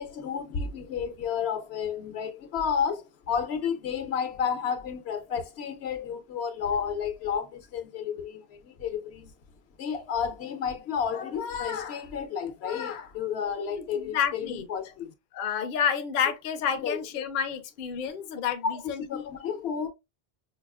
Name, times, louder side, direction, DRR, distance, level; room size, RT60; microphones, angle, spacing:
voice 1, 0.0-9.3 9.8-15.1 16.8-17.0 18.6-19.9, left 7 dB, 80° left, 1.0 m, -31 dB
voice 2, 13.7-14.7 15.3-19.2, left 8 dB, 60° left, 0.7 m, -30 dB
4.8 x 2.3 x 2.3 m
omnidirectional pair, 1.1 m